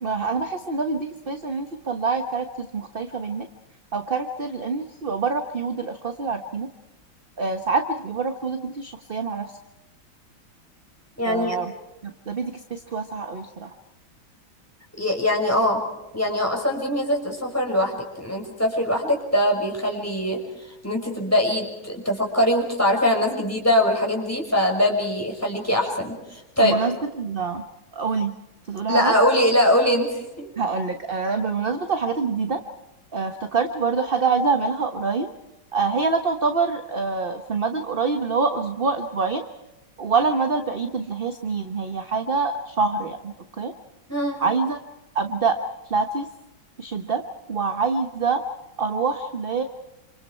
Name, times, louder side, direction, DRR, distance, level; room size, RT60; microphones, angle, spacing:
voice 1, 0.0-3.5 3.9-6.7 7.4-9.5 11.2-11.7 12.0-13.7 26.6-27.6 27.9-28.4 28.7-29.1 30.6-32.6 33.1-35.3 35.7-39.4 40.0-43.7 44.4-44.8 45.1-45.6 45.9-46.3 46.8-47.2 47.5-48.4 48.8-49.6, right 4 dB, 30° right, 6 dB, 1.3 m, -25 dB
voice 2, 11.2-11.6 15.0-15.8 16.1-20.4 20.8-26.8 28.9-30.5 44.1-44.4, left 1 dB, 5° left, 1 dB, 5.9 m, -22 dB
28.5 x 27.0 x 4.6 m, 1.0 s
omnidirectional pair, 2.2 m